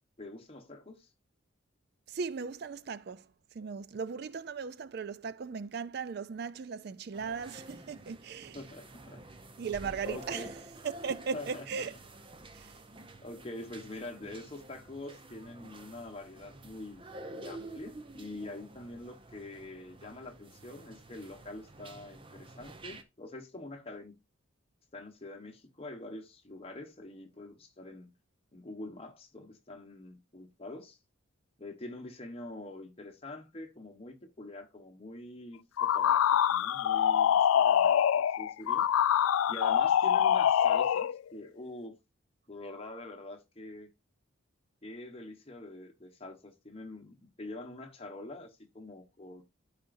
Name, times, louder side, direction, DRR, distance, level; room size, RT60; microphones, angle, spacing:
voice 1, 0.2-1.1 8.5-9.2 10.1-10.5 11.3-11.8 13.2-24.1 24.9-28.1 28.5-31.0 31.6-38.9 39.5-42.0 42.5-43.9 44.8-49.4, left 2 dB, 30° left, 1.3 m, -45 dB
voice 2, 2.1-8.6 9.6-10.5 10.8-12.0 12.5-12.8, right 6 dB, 50° right, 0.3 m, -38 dB
sound 1, 7.1-23.0, right 1 dB, 25° right, 0.7 m, -49 dB
sound 2, 35.8-41.2, left 9 dB, 85° left, 0.3 m, -25 dB
12.5 x 5.1 x 2.6 m
head